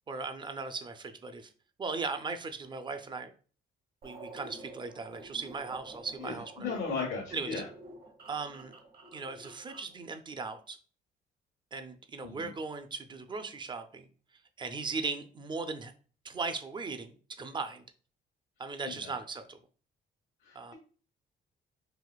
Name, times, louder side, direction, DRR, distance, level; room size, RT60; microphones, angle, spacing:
voice 1, 0.0-1.5 1.8-3.3 4.0-6.5 7.3-7.5 8.3-8.7 9.1-10.8 11.7-14.1 14.6-15.9 16.2-17.8 18.6-19.6 20.5-20.7, right 4 dB, 25° right, 8 dB, 0.4 m, -38 dB
sound 1, 4.0-10.0, right 2 dB, 50° right, 0.8 m, -50 dB
voice 2, 6.2-7.6 12.2-12.5 18.8-19.1 20.4-20.7, left 4 dB, 85° left, -3 dB, 1.1 m, -37 dB
4.0 x 2.5 x 2.2 m, 0.40 s
cardioid pair, 90°, 20 cm